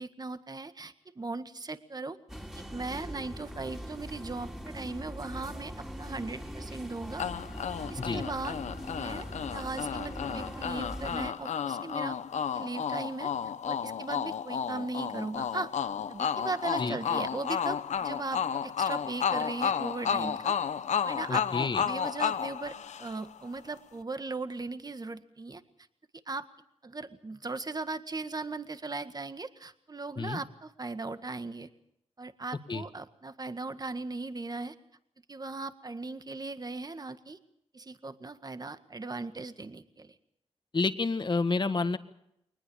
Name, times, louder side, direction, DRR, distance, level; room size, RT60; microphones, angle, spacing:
voice 1, 0.0-2.2 2.5-7.2 7.9-8.6 9.0-12.2 12.5-13.3 13.6-15.7 16.1-20.5 21.0-25.6 26.3-26.5 26.8-31.7 32.2-34.8 35.3-37.4 37.7-40.1, right 3 dB, 35° right, 10 dB, 1.7 m, -38 dB
sound 1, 2.3-11.3, equal, 5° right, 3.4 m, -41 dB
sound 2, 7.2-23.4, left 7 dB, 80° left, 0.9 m, -32 dB
voice 2, 21.3-21.8 30.2-30.4 32.7-32.8 40.7-42.0, left 3 dB, 40° left, 10 dB, 1.7 m, -29 dB
23.0 x 20.0 x 7.1 m, 0.79 s
cardioid pair, 70°, 12 cm